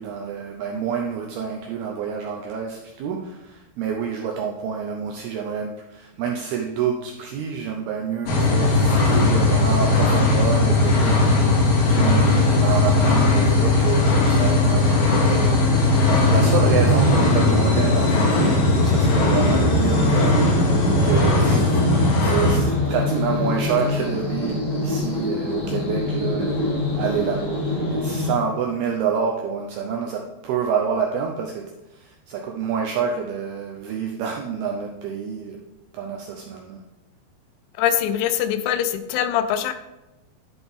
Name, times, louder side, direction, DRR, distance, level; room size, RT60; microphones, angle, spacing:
voice 1, 0.0-11.2 11.9-20.6 21.0-21.8 22.1-35.6 35.9-36.8, right 6 dB, 80° right, 1 dB, 2.2 m, -28 dB
sound 1, 8.3-22.6, left 2 dB, 70° left, 4.0 m, -18 dB
sound 2, 15.7-28.3, left 2 dB, 25° left, 2.7 m, -26 dB
voice 2, 37.8-39.7, left 10 dB, 90° left, 10 dB, 3.2 m, -23 dB
11.0 x 6.0 x 3.6 m, 1.0 s
omnidirectional pair, 5.4 m